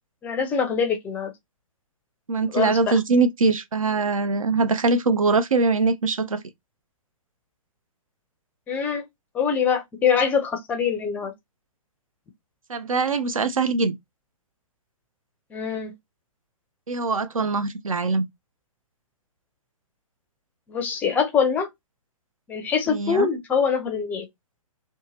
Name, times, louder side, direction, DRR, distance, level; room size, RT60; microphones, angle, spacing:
voice 1, 0.2-1.3 2.5-2.8 8.7-9.1 9.3-11.3 15.5-15.9 20.7-21.7 22.5-24.3, left 6 dB, 10° left, 0.4 m, -24 dB
voice 2, 2.3-6.4 12.7-14.0 16.9-18.3 22.9-23.3, right 3 dB, 75° right, 0.5 m, -22 dB
2.6 x 2.1 x 3.1 m
figure-of-eight pair, 120°, 18 cm